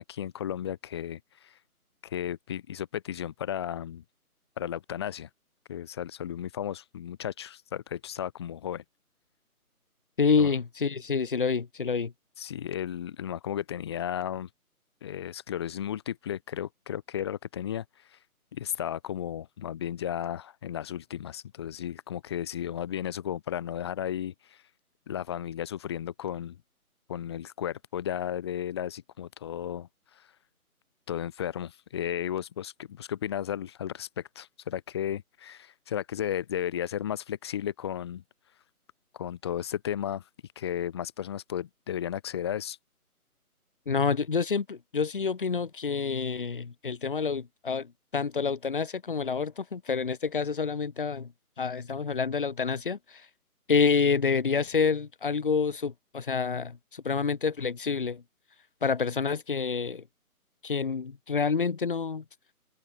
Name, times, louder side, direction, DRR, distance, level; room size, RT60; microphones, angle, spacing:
voice 1, 0.0-1.5 2.0-4.0 4.6-5.3 5.7-8.8 10.4-10.5 12.4-14.5 15.0-17.8 18.1-18.2 18.5-24.6 25.1-26.6 27.1-29.9 30.2-30.3 31.1-38.2 39.1-40.2 40.6-42.8, left 10 dB, 15° left, 2.4 m, -34 dB
voice 2, 10.2-12.1 43.9-51.3 51.6-53.0 53.7-58.2 58.8-60.0 60.6-62.2, left 5 dB, 35° left, 1.5 m, -28 dB
figure-of-eight pair, 165°, 45 cm